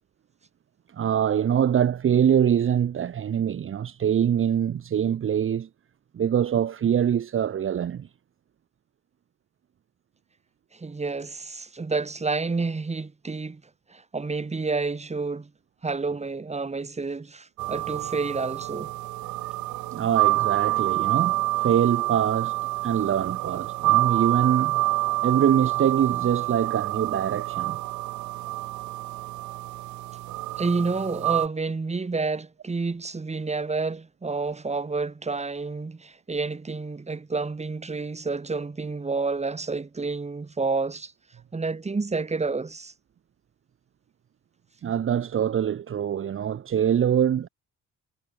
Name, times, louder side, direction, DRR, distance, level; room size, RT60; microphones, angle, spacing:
voice 1, 0.9-5.7 6.1-8.1 19.9-24.8 25.2-27.8 44.8-47.5, right 9 dB, 45° right, 0.9 m, -24 dB
voice 2, 10.7-13.6 13.9-15.5 15.8-18.9 30.6-41.1 41.5-42.9, right 4 dB, 20° right, 2.1 m, -29 dB
sound 1, 17.6-31.5, right 18 dB, 75° right, 0.5 m, -27 dB
cardioid pair, 90°, 30 cm